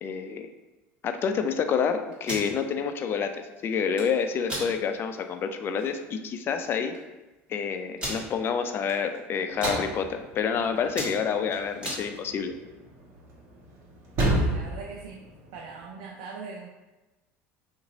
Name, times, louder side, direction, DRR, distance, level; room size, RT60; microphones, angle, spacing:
voice 1, 0.0-0.5 1.0-3.3 3.6-6.9 7.5-12.5, left 6 dB, 40° left, 7 dB, 0.4 m, -28 dB
sound 1, 2.1-2.5 3.7-4.1 4.5-4.7 5.2-5.3 5.6-5.9 6.7-6.8 6.9-7.0 8.0-8.2 8.9-9.2 9.4-9.8 10.4-10.5 10.8-12.0, equal, 20° right, 1.5 m, -34 dB
sound 2, 9.5-15.9, right 1 dB, 55° right, 1.1 m, -32 dB
voice 2, 14.3-15.2 15.5-16.7, right 4 dB, 80° right, 1 dB, 0.4 m, -40 dB
2.9 x 2.5 x 3.9 m, 1.1 s
supercardioid pair, 95°, 6 cm